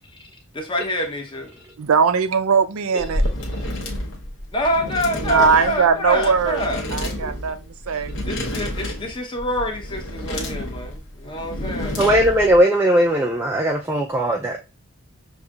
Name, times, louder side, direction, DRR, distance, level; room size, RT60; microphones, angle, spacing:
voice 1, 0.1-1.5 4.5-6.8 7.9-8.0 8.2-12.1, equal, 25° left, 0.8 m, -26 dB
voice 2, 1.8-3.2 5.2-6.6 6.9-8.1, right 5 dB, 85° right, 0.5 m, -20 dB
sound 1, 3.0-12.6, left 1 dB, 65° left, 0.9 m, -29 dB
voice 3, 12.0-14.7, equal, 10° right, 0.3 m, -19 dB
6.3 x 2.7 x 2.4 m
head